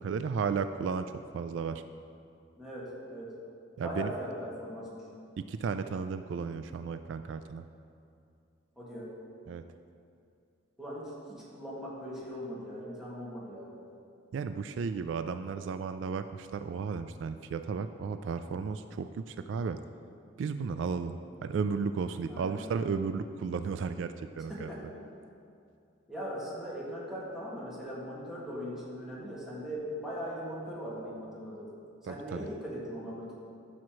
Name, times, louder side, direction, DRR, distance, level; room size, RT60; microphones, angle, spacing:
voice 1, 0.0-1.8 3.8-4.1 5.4-7.7 9.5-9.6 14.3-19.8 20.4-24.7 32.0-32.4, right 5 dB, 70° right, 10 dB, 0.3 m, -34 dB
voice 2, 2.6-3.3 3.8-5.1 8.8-9.1 10.8-13.7 22.3-22.9 24.5-24.8 26.1-31.7 32.0-33.3, equal, 5° right, -8 dB, 2.2 m, -40 dB
14.0 x 6.2 x 3.1 m, 2.5 s
head